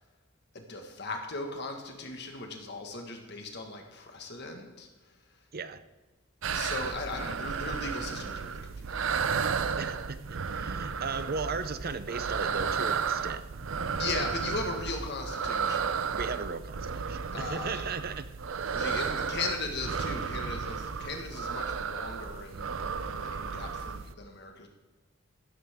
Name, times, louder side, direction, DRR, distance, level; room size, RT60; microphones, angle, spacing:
voice 1, 0.5-5.5 6.5-9.0 13.9-16.2 17.3-17.8 18.7-24.7, left 3 dB, 60° left, 3 dB, 1.7 m, -38 dB
sound 1, 6.4-24.1, right 6 dB, 80° right, 0.6 m, -33 dB
voice 2, 9.8-13.4 14.1-14.2 16.1-18.3 18.7-18.9, right 4 dB, 50° right, 12 dB, 0.7 m, -36 dB
14.5 x 12.5 x 3.7 m, 1.2 s
head